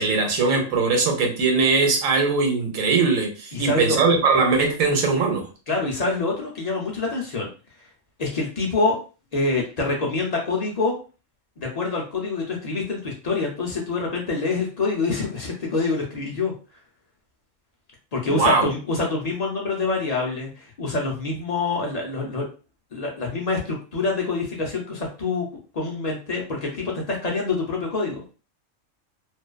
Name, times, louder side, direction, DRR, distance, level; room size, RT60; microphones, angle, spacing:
voice 1, 0.0-5.4 18.3-18.7, right 4 dB, 85° right, 2 dB, 1.1 m, -20 dB
voice 2, 3.5-4.0 5.7-7.5 8.2-9.0 9.3-10.9 11.6-16.5 18.1-22.5 22.9-25.5 25.7-28.2, left 3 dB, 55° left, -1 dB, 0.4 m, -26 dB
2.5 x 2.2 x 2.3 m, 0.35 s
omnidirectional pair, 1.3 m